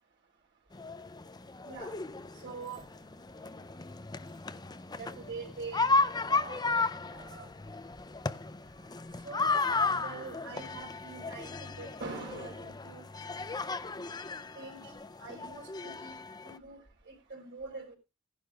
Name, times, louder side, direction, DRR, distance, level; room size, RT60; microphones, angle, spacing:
sound 1, 0.7-16.6, left 3 dB, 20° left, 0.5 m, -34 dB
voice 1, 2.4-2.8 5.0-5.9 6.3-7.5 9.2-9.6 10.0-13.0 14.6-16.1 16.4-16.8 17.1-18.0, right 4 dB, 55° right, 4.2 m, -44 dB
17.5 x 11.5 x 2.4 m
head